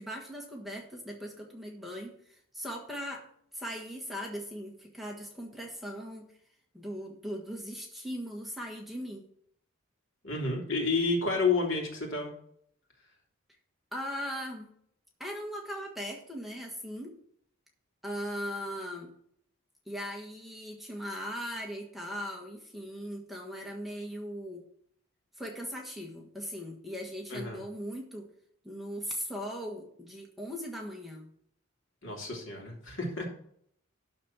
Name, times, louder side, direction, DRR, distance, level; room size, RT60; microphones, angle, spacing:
voice 1, 0.0-3.3 3.5-6.3 6.7-9.2 13.9-14.7 15.2-17.2 18.0-19.1 19.9-24.6 25.4-28.3 28.6-31.3, equal, ahead, -1 dB, 1.4 m, -39 dB
voice 2, 10.2-12.3 27.3-27.6 32.0-33.3, left 3 dB, 65° left, 0 dB, 2.9 m, -30 dB
12.0 x 4.2 x 7.3 m, 0.67 s
head